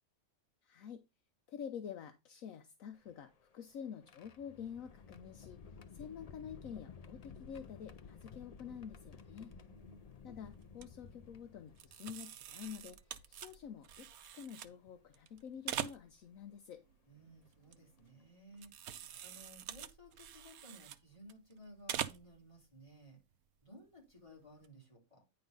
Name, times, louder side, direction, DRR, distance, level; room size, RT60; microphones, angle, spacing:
voice 1, 0.6-1.0 1.5-5.6 5.9-9.5 10.2-14.1 14.3-16.8, left 8 dB, 70° left, 8 dB, 1.1 m, -48 dB
sound 1, 2.9-12.2 13.1-13.2 14.7-14.9 15.7-15.9 17.5-17.6 18.0-18.2, left 5 dB, 55° left, 0.4 m, -55 dB
voice 2, 9.2-10.0 17.1-18.7 19.0-23.2 23.6-25.2, equal, 20° left, -1 dB, 3.7 m, -58 dB
sound 2, 9.8-10.2 10.5-10.9 11.8-14.7 15.1-16.4 16.8-18.2 18.5-21.5 21.8-22.4 22.8-22.9 24.4-24.7, right 10 dB, 90° right, 1.2 m, -44 dB
9.6 x 3.9 x 5.2 m, 0.24 s
omnidirectional pair, 1.5 m